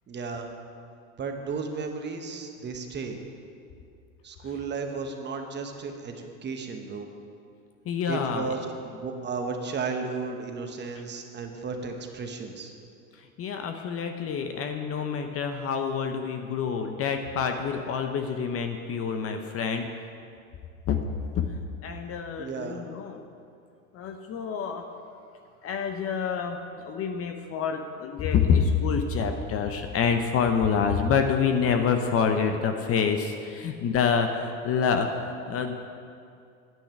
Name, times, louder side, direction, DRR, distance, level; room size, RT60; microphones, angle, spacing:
voice 1, 0.1-0.5 1.2-3.2 4.2-7.1 8.1-12.7 22.4-22.8, right 4 dB, 25° right, 4 dB, 1.1 m, -34 dB
voice 2, 7.9-8.5 13.2-19.9 20.9-21.0 21.8-23.2 23.9-24.8 25.6-35.7, left 6 dB, 35° left, 6 dB, 0.8 m, -27 dB
10.0 x 9.2 x 5.9 m, 2.4 s
hypercardioid pair, 110°, 43 cm